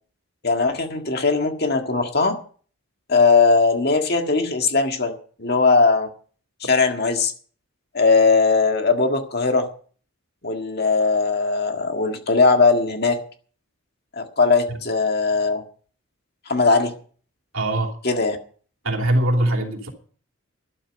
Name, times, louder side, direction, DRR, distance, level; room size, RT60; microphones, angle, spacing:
voice 1, 0.4-2.4 3.1-5.1 5.4-6.1 6.7-7.3 7.9-9.7 10.4-13.2 14.1-15.6 16.5-16.9 18.0-18.4, left 4 dB, 45° left, 5 dB, 1.8 m, -19 dB
voice 2, 17.5-18.0 18.8-19.9, right 1 dB, 65° right, 3 dB, 2.9 m, -22 dB
12.5 x 12.0 x 5.3 m, 0.43 s
head